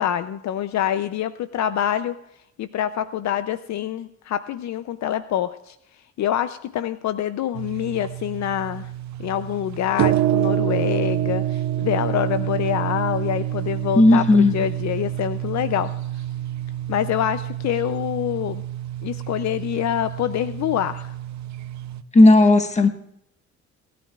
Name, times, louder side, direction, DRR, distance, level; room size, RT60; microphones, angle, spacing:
voice 1, 0.0-2.2 2.6-5.8 6.2-8.9 9.2-11.4 11.8-15.9 16.9-18.6 19.0-21.1, left 10 dB, 65° left, 12 dB, 0.6 m, -25 dB
sound 1, 7.5-22.0, right 12 dB, 65° right, 0.7 m, -27 dB
voice 2, 13.9-14.5 22.1-22.9, left 2 dB, 25° left, 6 dB, 1.4 m, -13 dB
29.0 x 10.5 x 2.4 m, 0.81 s
cardioid pair, 90°, 30 cm